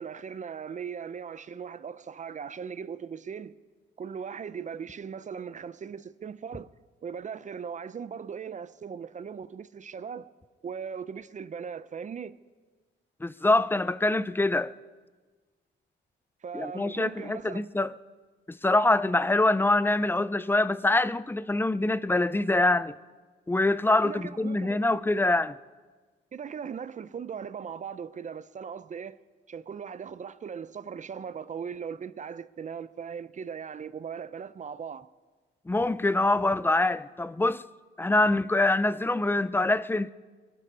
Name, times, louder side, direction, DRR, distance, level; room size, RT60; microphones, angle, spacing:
voice 1, 0.0-3.6 4.0-6.7 7.0-10.3 10.6-12.4 16.4-17.6 24.0-25.0 26.3-29.1 29.5-35.1, right 7 dB, 40° right, 0.6 m, -39 dB
voice 2, 13.2-14.7 16.5-18.0 18.5-22.9 23.5-25.6 35.7-37.6 38.0-40.1, left 2 dB, 10° left, 0.5 m, -25 dB
23.5 x 12.0 x 4.9 m
cardioid pair, 90°, 20 cm